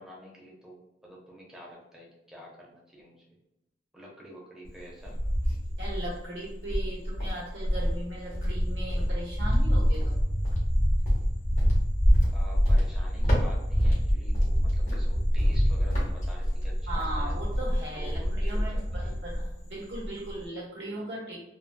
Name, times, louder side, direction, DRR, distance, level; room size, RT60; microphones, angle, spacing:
voice 1, 0.0-3.2 3.9-5.2 12.3-17.3 17.9-19.2, equal, 5° right, -4 dB, 0.8 m, -48 dB
Cricket, 4.7-6.2 6.7-19.6 19.9-20.5, equal, 45° left, 1.1 m, -25 dB
voice 2, 5.8-10.2 16.9-21.4, right 1 dB, 90° right, -5 dB, 1.2 m, -38 dB
3.7 x 2.2 x 2.3 m, 0.91 s
head